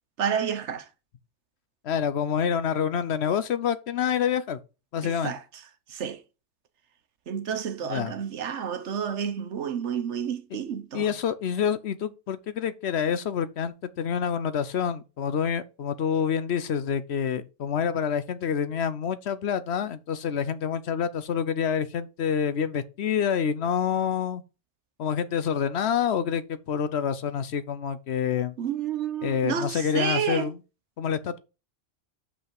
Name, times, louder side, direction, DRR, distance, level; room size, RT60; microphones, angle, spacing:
voice 1, 0.2-0.9 5.0-5.4 5.9-6.2 7.3-11.2 28.6-30.5, right 8 dB, 70° right, 1.2 m, -30 dB
voice 2, 1.8-4.6 4.9-5.3 7.9-8.1 10.9-24.4 25.0-28.5 29.2-30.6 31.0-31.4, left 7 dB, 65° left, 0.9 m, -27 dB
5.6 x 5.5 x 5.9 m
omnidirectional pair, 1.2 m